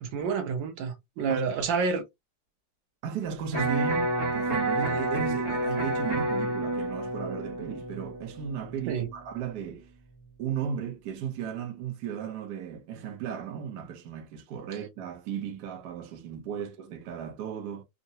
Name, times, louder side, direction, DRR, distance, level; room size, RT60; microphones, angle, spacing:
voice 1, 0.0-2.0 8.9-9.1, right 5 dB, 85° right, 1.5 m, -29 dB
voice 2, 3.0-9.9 10.4-17.8, right 8 dB, 65° right, 1.2 m, -35 dB
Electric guitar, 3.5-9.6, right 2 dB, 20° right, 0.7 m, -30 dB
3.8 x 2.1 x 2.7 m
omnidirectional pair, 2.0 m